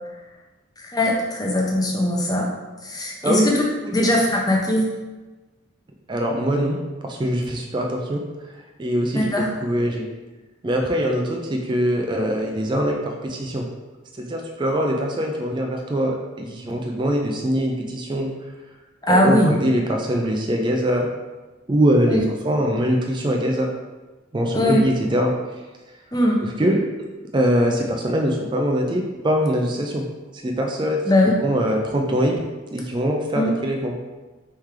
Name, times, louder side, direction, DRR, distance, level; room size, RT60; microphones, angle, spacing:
voice 1, 0.9-2.5 2.8-3.6 3.9-4.9 9.1-9.5 19.1-19.5 22.1-22.2 24.5-24.8 26.1-26.4 31.0-31.3 33.3-33.5, left 1 dB, 20° left, -1 dB, 0.6 m, -20 dB
voice 2, 6.1-6.8 7.0-8.2 8.8-10.1 10.6-13.7 14.2-18.3 19.1-21.1 21.7-23.7 24.3-25.3 26.4-26.8 27.3-30.1 30.3-32.4 32.7-33.9, equal, 20° right, 1 dB, 0.4 m, -22 dB
4.3 x 3.2 x 3.6 m, 1.2 s
head